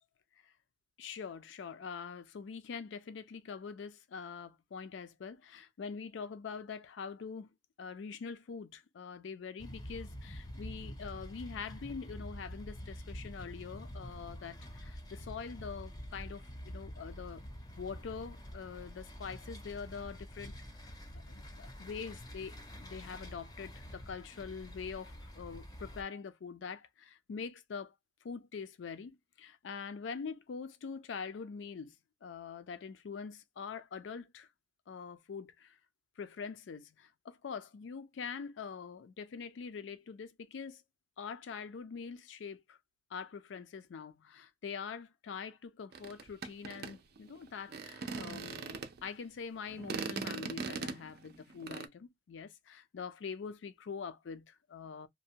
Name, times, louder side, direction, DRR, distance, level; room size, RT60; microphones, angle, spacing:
voice 1, 1.0-7.5 7.8-17.4 17.8-27.9 28.2-34.5 34.9-35.8 36.2-40.8 41.2-42.8 43.1-55.1, left 5 dB, 75° left, 0.4 m, -44 dB
sound 1, 9.6-26.0, equal, 20° left, 0.5 m, -47 dB
sound 2, 45.9-49.1 49.7-51.9, right 5 dB, 55° right, 0.4 m, -40 dB
2.7 x 2.1 x 2.7 m
head